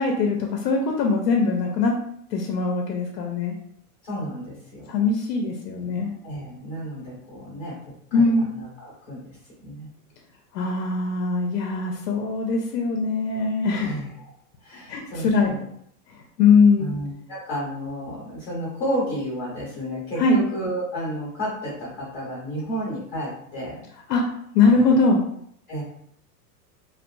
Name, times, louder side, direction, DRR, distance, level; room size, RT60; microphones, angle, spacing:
voice 1, 0.0-1.9 2.3-3.5 4.9-6.1 8.1-8.5 10.5-14.0 14.7-15.5 16.4-16.9 20.2-20.4 24.1-24.2 24.5-25.2, left 4 dB, 80° left, 1 dB, 0.6 m, -21 dB
voice 2, 4.0-4.8 6.2-7.8 8.1-9.4 9.6-9.9 13.8-14.3 14.6-15.6 16.8-23.8 24.7-24.9 25.7-25.8, equal, 20° left, -8 dB, 0.7 m, -32 dB
2.5 x 2.4 x 2.2 m, 0.67 s
supercardioid pair, 165°, 49 cm